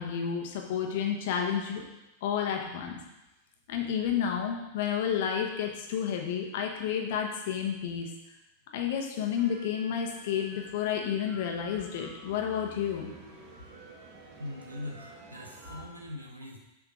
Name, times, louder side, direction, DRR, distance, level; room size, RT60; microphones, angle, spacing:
voice 1, 0.0-1.8 2.2-2.9 3.7-8.1 8.7-13.1, left 8 dB, 50° left, 2 dB, 1.0 m, -31 dB
sound 1, 9.4-15.9, right 1 dB, 45° right, 1.2 m, -50 dB
voice 2, 14.4-16.6, left 1 dB, 80° right, 1 dB, 1.0 m, -41 dB
6.6 x 3.6 x 4.9 m, 0.95 s
figure-of-eight pair, 90°, 0 cm